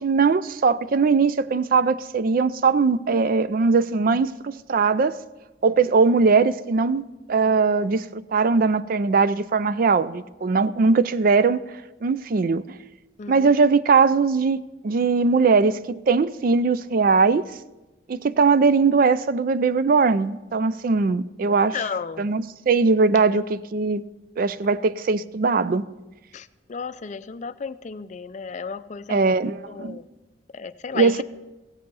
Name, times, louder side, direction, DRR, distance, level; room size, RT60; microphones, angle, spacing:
voice 1, 0.0-5.1 5.6-11.6 12.0-12.6 13.3-17.4 18.1-21.8 22.2-24.0 24.4-25.9 29.1-30.0 30.9-31.2, right 4 dB, 50° right, 0.4 m, -20 dB
voice 2, 13.2-13.5 21.5-22.3 26.3-29.4 29.7-30.1 30.5-31.2, left 5 dB, 40° left, 0.4 m, -34 dB
16.5 x 7.9 x 5.4 m
head